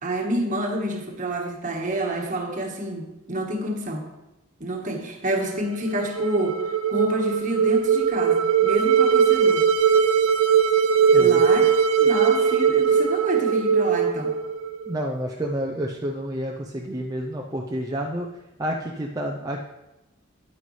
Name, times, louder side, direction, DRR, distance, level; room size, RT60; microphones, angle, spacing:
voice 1, 0.0-4.1 4.6-6.6 6.9-9.6 11.1-11.7 12.0-14.3, right 1 dB, 40° right, 1 dB, 1.4 m, -28 dB
sound 1, 5.8-15.0, right 7 dB, 90° right, 0.4 m, -20 dB
voice 2, 11.1-11.4 14.9-18.3 18.6-19.6, equal, 20° right, -1 dB, 0.6 m, -29 dB
9.7 x 9.4 x 3.2 m, 0.97 s
head